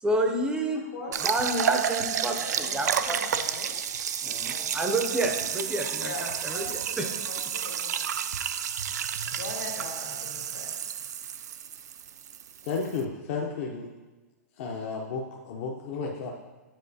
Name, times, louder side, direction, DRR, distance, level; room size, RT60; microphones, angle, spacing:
voice 1, 0.0-0.8 1.2-3.2 4.2-7.1, right 1 dB, 10° right, 3 dB, 0.5 m, -29 dB
sound 1, 1.1-13.0, right 8 dB, 80° right, 0.3 m, -31 dB
voice 2, 2.3-3.7 4.5-5.4 6.0-6.2 6.5-8.0 9.3-10.7, left 2 dB, 85° left, -2 dB, 2.0 m, -41 dB
voice 3, 12.7-13.9 14.6-16.3, left 4 dB, 50° left, 0 dB, 0.6 m, -32 dB
9.0 x 4.5 x 2.7 m, 1.2 s
hypercardioid pair, 135°, 9 cm